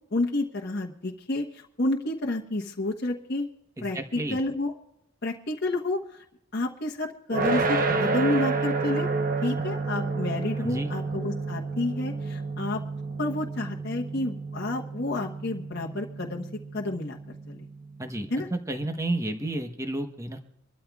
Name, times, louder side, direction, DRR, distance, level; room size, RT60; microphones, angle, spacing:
voice 1, 0.1-3.5 3.8-4.7 5.2-6.2 6.5-9.1 9.4-12.8 13.2-16.5 16.7-17.2 17.5-17.6 18.3-18.5, left 2 dB, 50° left, -1 dB, 1.1 m, -30 dB
voice 2, 3.8-4.4 10.6-10.9 18.0-20.4, right 1 dB, 15° right, 5 dB, 1.0 m, -31 dB
sound 1, 7.3-18.3, right 3 dB, 40° right, 0.9 m, -30 dB
26.0 x 13.0 x 2.4 m, 0.83 s
head